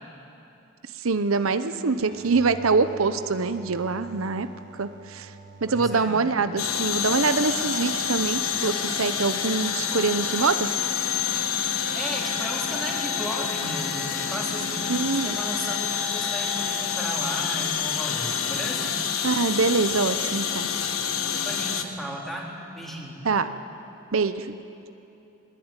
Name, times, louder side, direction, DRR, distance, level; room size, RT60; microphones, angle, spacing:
voice 1, 1.0-4.5 4.7-5.3 5.6-10.7 14.9-15.4 19.2-20.7 23.2-23.5 24.1-24.6, right 4 dB, 90° right, 10 dB, 0.8 m, -24 dB
sound 1, 2.0-9.4, right 3 dB, 55° right, 1.1 m, -47 dB
voice 2, 5.7-6.2 11.6-19.0 21.3-23.2, equal, ahead, -3 dB, 3.8 m, -35 dB
sound 2, 6.6-21.8, left 7 dB, 85° left, 1.5 m, -28 dB
23.0 x 20.5 x 9.0 m, 2.9 s
head